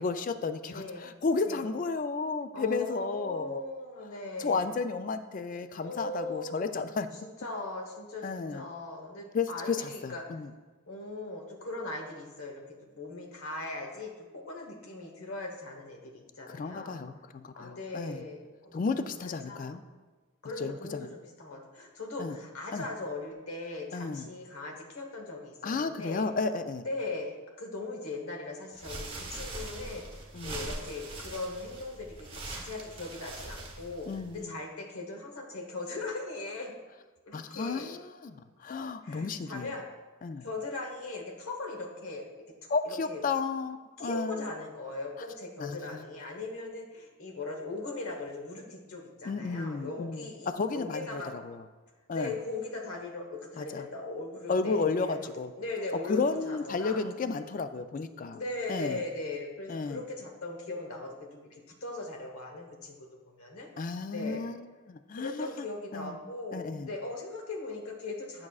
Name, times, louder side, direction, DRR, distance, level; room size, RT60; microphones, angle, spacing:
voice 1, 0.0-3.6 4.4-7.1 8.2-8.6 9.3-10.5 16.5-18.3 18.7-19.8 20.6-21.1 22.2-22.4 22.7-22.9 23.9-24.3 25.6-26.9 30.3-30.6 34.1-34.6 37.3-39.7 40.2-40.5 42.7-44.5 45.6-46.0 49.2-50.3 50.5-51.6 52.1-52.3 53.6-53.9 54.5-55.5 56.1-58.4 58.7-59.0 59.7-60.0 63.8-64.6 64.9-65.5 65.9-66.2 66.5-66.9, left 4 dB, 35° left, 10 dB, 0.3 m, -33 dB
voice 2, 0.7-1.1 1.5-1.6 2.5-4.7 5.8-6.9 7.2-10.2 10.9-17.0 17.5-18.8 19.1-19.7 20.4-26.2 26.8-34.1 34.3-36.7 37.3-37.9 39.0-39.8 40.4-42.3 42.6-43.2 44.0-51.3 52.1-55.2 55.6-57.0 58.3-63.7 64.1-64.4 65.2-68.5, left 2 dB, 80° left, 2 dB, 1.1 m, -39 dB
sound 1, 28.7-34.4, right 2 dB, 25° right, 0.9 m, -42 dB
10.5 x 6.0 x 2.4 m, 1.3 s
head